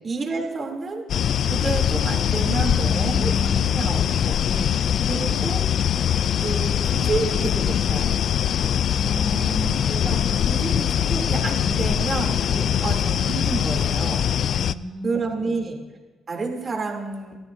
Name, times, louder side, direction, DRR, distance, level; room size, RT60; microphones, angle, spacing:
voice 1, 0.0-1.0 1.5-4.3 5.1-5.6 6.4-8.1 9.9-12.4 12.8-14.3 15.0-15.8 16.3-17.4, right 4 dB, 40° right, 1 dB, 3.0 m, -29 dB
sound 1, 1.1-14.7, left 9 dB, 65° left, 0.3 m, -22 dB
voice 2, 2.8-4.0 4.5-4.8 8.9-10.3 12.5-12.7 14.5-15.6, equal, 15° left, -5 dB, 4.1 m, -33 dB
29.0 x 13.0 x 2.7 m, 1.2 s
cardioid pair, 90°, 0 cm